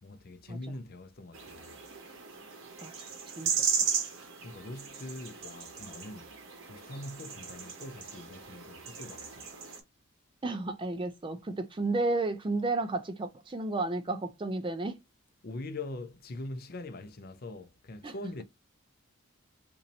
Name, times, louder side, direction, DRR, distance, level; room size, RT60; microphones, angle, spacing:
voice 1, 0.0-1.8 4.4-6.3 6.7-9.5 15.4-18.4, left 2 dB, 45° left, 0.5 m, -43 dB
sound 1, 1.3-9.8, right 6 dB, 60° right, 0.9 m, -36 dB
voice 2, 3.4-3.9 10.4-15.0 18.0-18.1, right 2 dB, 20° right, 0.4 m, -32 dB
2.7 x 2.7 x 4.1 m
head